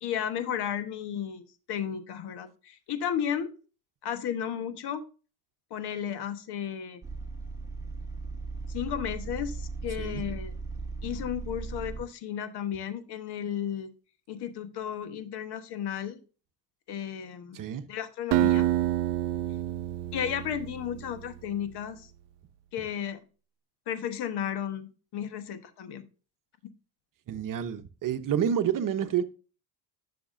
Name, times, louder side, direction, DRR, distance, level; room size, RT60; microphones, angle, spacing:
voice 1, 0.0-3.5 4.0-5.0 5.7-7.0 8.7-10.5 11.0-13.9 14.3-16.2 16.9-17.6 17.9-18.7 20.1-22.1 22.7-23.2 23.9-26.0, left 9 dB, 60° left, 1.3 m, -33 dB
sound 1, 7.0-12.0, right 3 dB, 5° right, 1.8 m, -37 dB
voice 2, 17.5-17.9 27.3-29.2, right 9 dB, 45° right, 1.0 m, -29 dB
Acoustic guitar, 18.3-21.3, right 14 dB, 65° right, 0.7 m, -28 dB
11.0 x 6.0 x 2.6 m
supercardioid pair, 80°, 45 cm